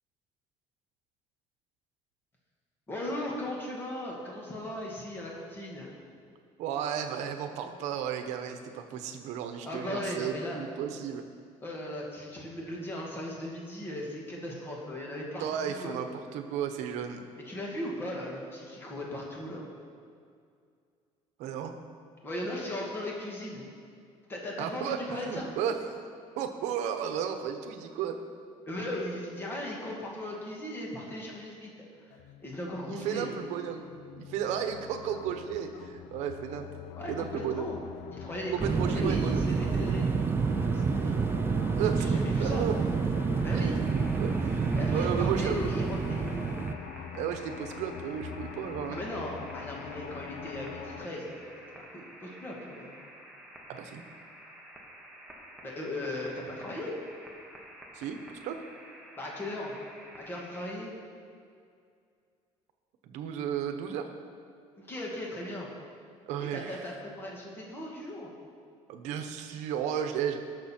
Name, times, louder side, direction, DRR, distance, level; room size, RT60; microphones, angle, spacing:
voice 1, 2.9-5.9 9.6-10.6 11.6-16.0 17.5-19.7 22.2-23.7 24.3-25.5 28.7-31.7 32.4-33.3 37.0-37.8 38.1-38.5 38.8-40.0 40.5-41.2 42.0-42.6 43.4-43.8 44.8-46.6 48.9-52.9 55.6-57.0 59.2-59.7 60.2-60.9 64.8-65.7 66.4-68.3, left 1 dB, 20° left, -2 dB, 1.9 m, -37 dB
voice 2, 6.6-11.2 15.4-17.2 21.4-21.7 24.6-25.9 26.4-28.2 32.8-33.8 34.2-36.7 37.1-37.7 38.5-39.5 41.7-42.1 42.4-42.7 43.5-45.6 47.1-49.0 53.7-54.0 57.9-58.6 63.0-64.1 66.3-66.9 68.9-70.4, right 8 dB, 70° right, 7 dB, 1.0 m, -34 dB
sound 1, 32.1-51.1, left 10 dB, 75° left, 0.5 m, -44 dB
sound 2, 38.6-46.7, right 5 dB, 20° right, 0.4 m, -28 dB
sound 3, 43.8-60.7, right 1 dB, 5° right, 1.4 m, -50 dB
19.5 x 6.6 x 4.4 m, 2.3 s
cardioid pair, 175°, 12 cm